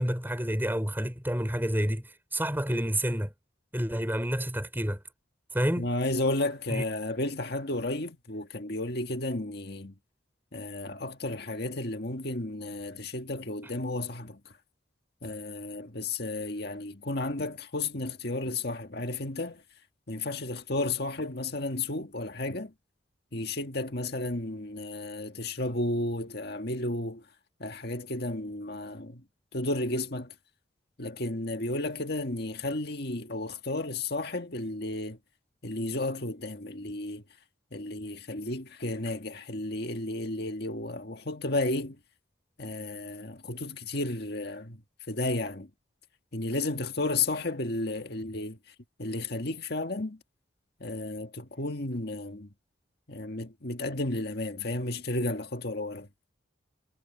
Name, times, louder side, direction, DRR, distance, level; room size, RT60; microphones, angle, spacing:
voice 1, 0.0-3.3 3.7-5.0 5.5-5.9 6.7-6.8, equal, 10° right, 6.4 m, -29 dB
voice 2, 5.8-9.9 10.5-14.4 15.2-19.6 20.1-22.7 23.3-27.2 27.6-29.2 29.5-30.3 31.0-35.2 35.6-37.2 37.7-42.0 42.6-44.8 45.1-45.7 46.3-48.6 49.0-50.2 50.8-52.5 53.1-56.1, left 2 dB, 55° left, 1.9 m, -33 dB
head